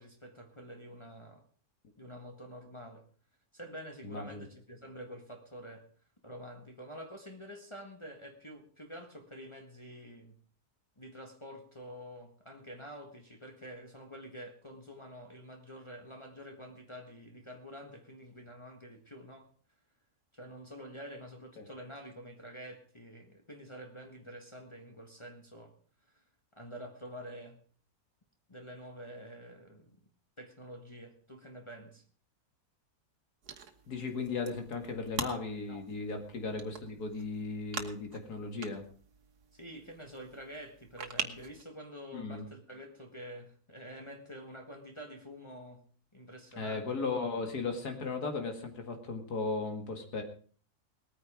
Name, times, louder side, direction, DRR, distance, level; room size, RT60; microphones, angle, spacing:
voice 1, 0.0-1.4 2.0-3.0 3.5-5.8 6.2-10.4 11.0-19.5 20.3-25.7 26.1-26.2 26.6-27.6 28.5-30.0 30.4-32.0 35.7-35.9 36.6-36.7 39.5-45.8 46.1-47.0, equal, 20° left, 3 dB, 1.7 m, -48 dB
voice 2, 4.0-4.4 21.6-21.7 33.9-38.8 42.1-42.4 46.6-50.2, left 4 dB, 85° left, 5 dB, 2.7 m, -36 dB
sound 1, 33.4-41.6, right 6 dB, 80° right, 1.9 m, -44 dB
19.5 x 9.5 x 5.0 m, 0.43 s
omnidirectional pair, 1.6 m